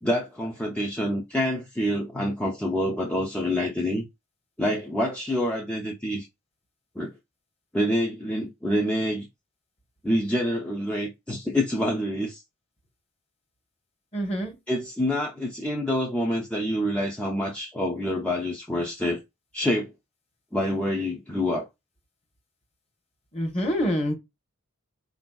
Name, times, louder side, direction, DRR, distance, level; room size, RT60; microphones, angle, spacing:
voice 1, 0.0-4.1 4.6-6.3 7.0-7.1 7.7-9.3 10.0-12.4 14.7-19.2 19.5-19.9 20.5-21.7, left 1 dB, 5° left, 0.4 m, -27 dB
voice 2, 14.1-14.5 23.3-24.1, equal, 30° left, 0.9 m, -26 dB
3.7 x 2.5 x 2.2 m
head